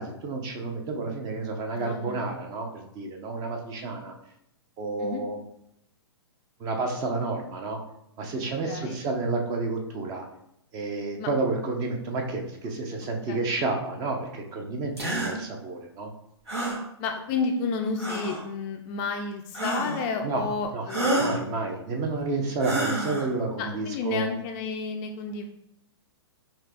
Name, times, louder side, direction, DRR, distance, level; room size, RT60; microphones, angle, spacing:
voice 1, 0.0-4.1 4.8-5.4 6.6-7.8 8.2-10.3 10.7-16.1 20.2-20.4 20.7-20.9 21.2-24.3, right 3 dB, 25° right, 3 dB, 0.7 m, -30 dB
voice 2, 1.7-2.4 5.0-5.2 8.4-9.0 11.2-11.3 13.3-13.4 17.0-21.4 23.6-25.4, left 4 dB, 30° left, 4 dB, 0.4 m, -31 dB
sound 1, 15.0-15.3 16.5-16.8 18.0-18.4 19.5-20.1 20.9-21.4 22.6-23.3, right 1 dB, 70° right, 1.7 m, -28 dB
4.5 x 2.8 x 3.6 m, 0.76 s
figure-of-eight pair, 115°, 14 cm